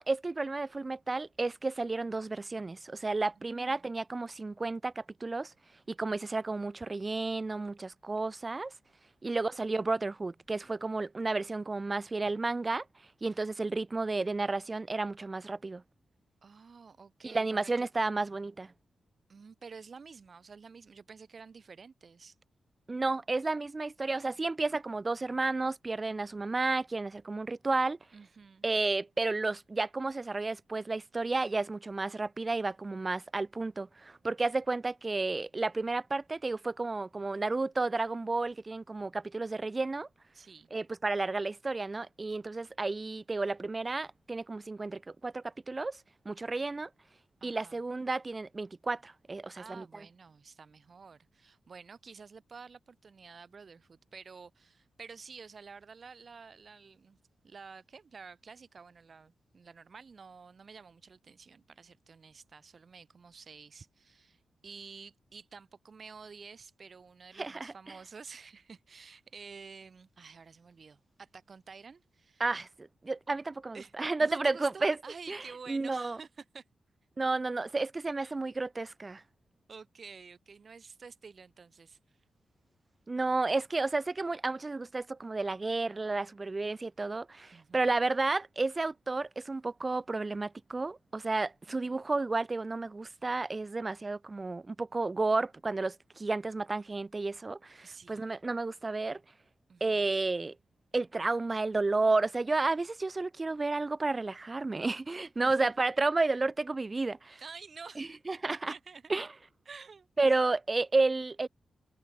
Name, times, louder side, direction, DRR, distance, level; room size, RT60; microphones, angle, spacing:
voice 1, 0.0-5.5 5.9-8.7 9.2-12.8 13.2-15.8 17.2-18.7 22.9-28.0 28.6-40.1 40.7-46.0 46.3-46.9 47.4-49.9 67.4-67.7 72.4-75.0 75.3-76.2 77.2-79.2 83.1-99.2 99.8-100.6 100.9-107.4 108.0-108.7 109.1-109.3 110.2-111.5, right 3 dB, 20° right, 2.1 m, -32 dB
voice 2, 3.4-3.9 16.4-17.9 19.3-22.4 28.1-28.6 40.3-40.7 47.4-47.8 49.6-57.2 57.4-72.5 73.7-73.9 74.2-76.6 78.2-78.3 79.7-82.2 87.5-87.9 91.7-92.0 97.8-98.2 99.7-100.1 105.4-105.7 107.4-108.2 108.5-109.1 109.7-110.4, right 5 dB, 40° right, 5.7 m, -50 dB
wide cardioid pair, 165°, 0 cm